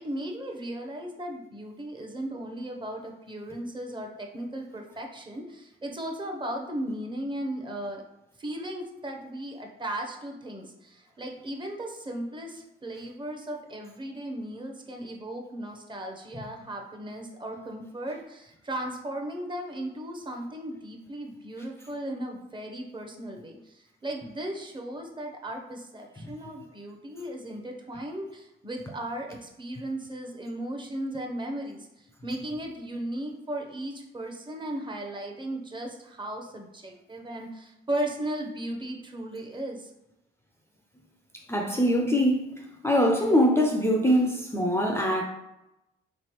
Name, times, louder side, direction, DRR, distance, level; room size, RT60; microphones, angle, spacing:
voice 1, 0.0-8.0 8.4-39.9, right 1 dB, 25° right, 0.7 m, -36 dB
voice 2, 41.5-45.2, equal, 15° left, 0.4 m, -23 dB
3.4 x 3.1 x 3.0 m
cardioid pair, 90°, 20 cm